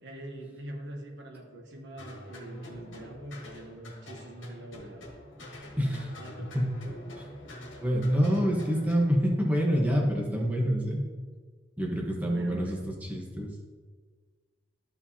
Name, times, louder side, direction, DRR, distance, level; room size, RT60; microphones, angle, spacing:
voice 1, 0.0-5.1 6.2-6.5 12.3-12.8, right 1 dB, 65° right, 2 dB, 1.1 m, -44 dB
sound 1, 2.0-9.1, equal, 75° left, 1.5 m, -45 dB
voice 2, 5.8-6.2 6.5-6.7 7.2-7.3 7.8-11.0 11.8-13.5, equal, 10° right, -2 dB, 1.1 m, -27 dB
12.0 x 5.0 x 2.8 m, 1.5 s
head